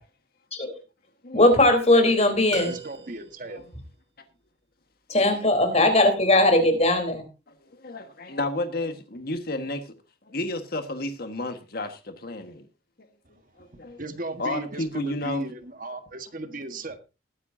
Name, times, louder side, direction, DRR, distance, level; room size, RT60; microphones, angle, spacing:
voice 1, 1.3-2.7 5.1-7.2, left 1 dB, 35° left, 3.8 m, -19 dB
sound 1, 2.5-3.6, right 4 dB, 70° right, 4.9 m, -38 dB
voice 2, 2.6-3.6 13.7-17.0, right 2 dB, 50° right, 1.5 m, -36 dB
voice 3, 7.6-9.9 10.3-12.6 13.6-14.0 14.4-15.4 16.5-16.8, left 2 dB, 55° left, 1.6 m, -32 dB
20.0 x 10.0 x 2.7 m
head